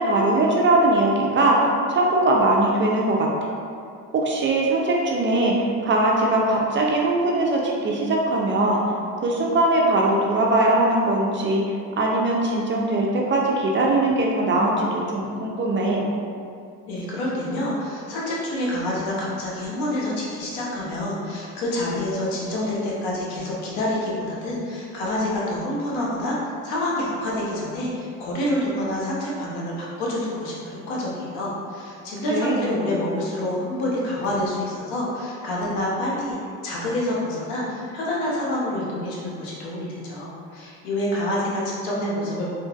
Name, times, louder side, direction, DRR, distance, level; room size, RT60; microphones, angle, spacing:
voice 1, 0.0-3.5 4.1-8.8 9.2-11.6 12.0-16.1 32.3-32.7, right 2 dB, 30° right, -1 dB, 0.4 m, -21 dB
voice 2, 16.9-36.4 36.6-42.6, left 1 dB, 80° left, -5 dB, 0.9 m, -27 dB
3.1 x 2.5 x 2.3 m, 2.3 s
supercardioid pair, 85°, 39 cm